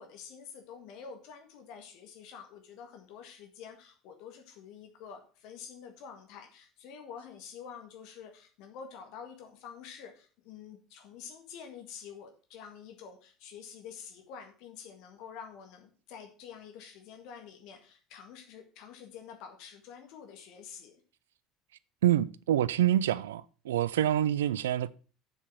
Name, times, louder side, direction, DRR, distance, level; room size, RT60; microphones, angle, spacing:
voice 1, 0.0-20.9, left 7 dB, 55° left, 1.8 m, -48 dB
voice 2, 22.0-24.9, right 12 dB, 70° right, 0.4 m, -26 dB
7.1 x 6.9 x 6.1 m
figure-of-eight pair, 65°, 0 cm